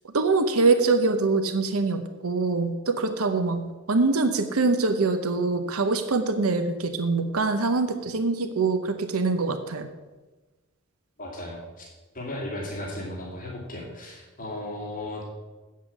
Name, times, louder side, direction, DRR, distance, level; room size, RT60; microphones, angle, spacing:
voice 1, 0.1-9.9, right 3 dB, 90° right, 8 dB, 0.8 m, -24 dB
voice 2, 11.2-11.8 12.1-15.2, left 1 dB, 40° left, -3 dB, 2.4 m, -35 dB
8.5 x 7.6 x 7.2 m, 1.2 s
head